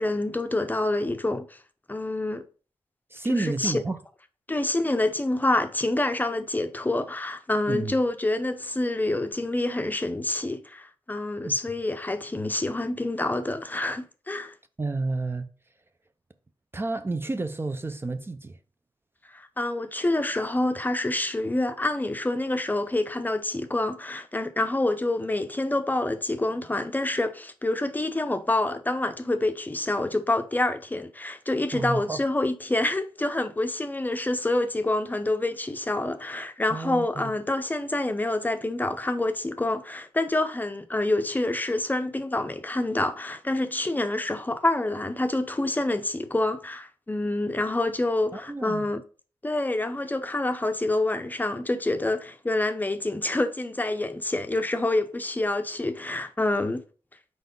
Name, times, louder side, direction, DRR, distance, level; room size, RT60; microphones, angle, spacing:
voice 1, 0.0-1.5 1.9-2.4 3.3-3.8 4.5-14.5 19.3-49.0 49.4-56.8, left 2 dB, 20° left, 0.6 m, -27 dB
voice 2, 3.1-4.0 7.7-7.9 11.4-11.6 14.8-15.5 16.7-18.6 31.7-32.2 36.7-37.3 48.3-48.9, right 3 dB, 25° right, 0.5 m, -30 dB
4.7 x 4.2 x 5.2 m
wide cardioid pair, 85°, 10 cm